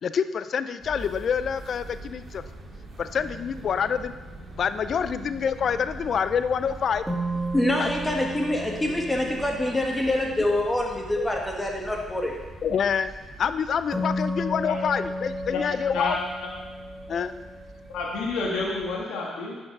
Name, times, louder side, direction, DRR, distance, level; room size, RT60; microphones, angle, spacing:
voice 1, 0.0-2.4 3.0-4.1 4.6-7.0 7.8-7.9 10.5-10.6 11.2-11.3 12.6-13.1 13.4-16.2 17.1-17.3, left 7 dB, 55° left, 12 dB, 0.4 m, -26 dB
sound 1, 0.8-19.0, right 2 dB, 40° right, 1.9 m, -44 dB
sound 2, 3.2-4.6 7.1-11.5 13.9-18.2, equal, 5° right, 1.6 m, -34 dB
voice 2, 7.5-12.4, left 1 dB, 15° left, 0 dB, 1.7 m, -25 dB
voice 3, 17.9-19.6, left 3 dB, 90° left, -3 dB, 1.6 m, -29 dB
9.7 x 5.3 x 4.7 m, 1.3 s
cardioid pair, 90°, 0 cm